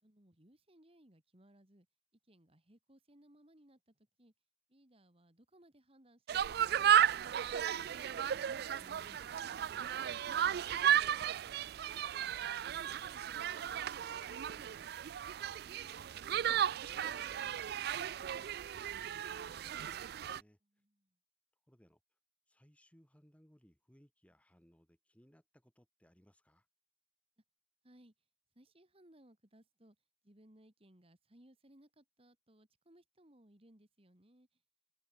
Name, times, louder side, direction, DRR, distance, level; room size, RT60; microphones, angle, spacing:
voice 1, 0.0-1.9 2.2-4.3 4.7-7.4 15.4-16.2 20.6-21.2 27.8-28.1 28.5-30.0 30.2-34.6, right 1 dB, 30° right, 2.6 m, -64 dB
sound 1, 6.3-20.4, right 9 dB, 55° right, 0.3 m, -34 dB
voice 2, 8.5-15.5 16.2-20.6 21.7-22.0 22.5-26.7, equal, 5° left, 3.1 m, -67 dB
head